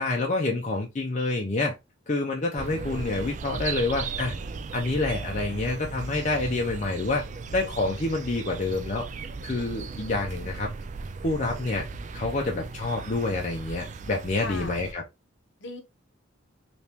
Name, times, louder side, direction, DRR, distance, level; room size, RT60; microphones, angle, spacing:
voice 1, 0.0-1.7 2.1-4.3 4.7-7.2 7.5-9.1 9.4-10.7 11.2-11.9 12.1-15.0, left 2 dB, 35° left, 0.5 m, -27 dB
voice 2, 2.6-3.4 14.4-14.8 15.6-15.8, left 3 dB, 60° left, 0.9 m, -40 dB
sound 1, 2.6-14.9, right 4 dB, 35° right, 0.3 m, -37 dB
3.4 x 3.0 x 2.8 m
head